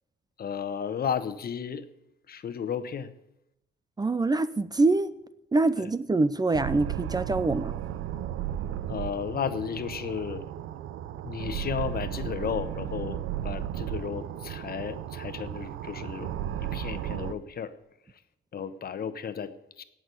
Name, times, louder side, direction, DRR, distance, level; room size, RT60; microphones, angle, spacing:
voice 1, 0.4-1.9 2.3-3.1 5.8-5.9 8.9-10.5 11.2-17.7 18.5-19.8, left 7 dB, 50° left, 12 dB, 1.1 m, -34 dB
voice 2, 4.0-5.1 5.5-7.7, right 3 dB, 20° right, 15 dB, 0.5 m, -25 dB
sound 1, 6.5-17.3, right 11 dB, 85° right, 0.6 m, -34 dB
16.5 x 6.2 x 7.7 m, 0.84 s
cardioid pair, 90°, 20 cm